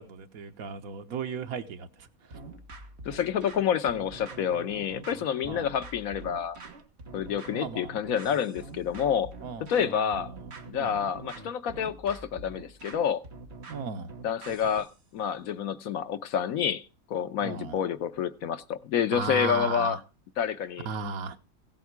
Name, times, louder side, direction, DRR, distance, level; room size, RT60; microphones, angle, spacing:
voice 1, 0.0-2.4 5.4-5.8 7.5-7.9 9.4-10.5 10.7-11.0 13.7-14.1 17.4-17.8 19.1-20.0 20.8-21.4, right 5 dB, 85° right, 1.5 m, -36 dB
sound 1, 2.3-15.0, right 3 dB, 50° right, 1.7 m, -45 dB
voice 2, 3.0-6.6 7.1-9.3 9.6-10.3 10.7-13.2 14.2-16.8 17.1-20.0 20.4-20.9, left 8 dB, 85° left, 1.3 m, -28 dB
16.0 x 8.4 x 4.7 m
omnidirectional pair, 1.5 m